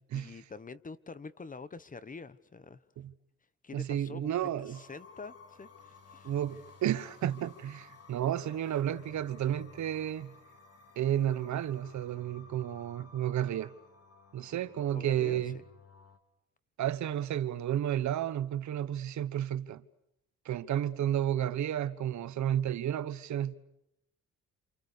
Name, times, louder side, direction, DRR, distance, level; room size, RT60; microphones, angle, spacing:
voice 1, 0.1-2.8 3.6-6.3 14.9-15.6, left 4 dB, 25° left, 1.1 m, -46 dB
voice 2, 3.7-4.8 6.2-10.3 11.0-13.7 14.3-15.6 16.8-19.8 20.4-23.5, right 11 dB, 70° right, 1.3 m, -32 dB
sound 1, 4.7-16.2, left 4 dB, 55° left, 3.9 m, -56 dB
28.5 x 28.0 x 6.8 m
cardioid pair, 90°, 30 cm